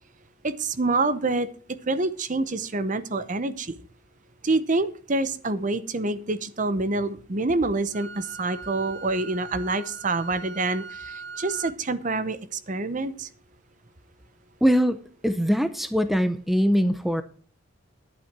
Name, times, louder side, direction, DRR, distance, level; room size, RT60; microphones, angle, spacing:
voice 1, 0.4-1.5 1.9-3.8 4.4-12.4 12.7-13.3, right 2 dB, 40° right, 13 dB, 0.8 m, -26 dB
Wind instrument woodwind instrument, 7.9-11.8, right 5 dB, 60° right, 1.2 m, -41 dB
voice 2, 14.6-17.2, equal, ahead, 11 dB, 0.6 m, -22 dB
11.5 x 8.4 x 6.0 m, 0.42 s
head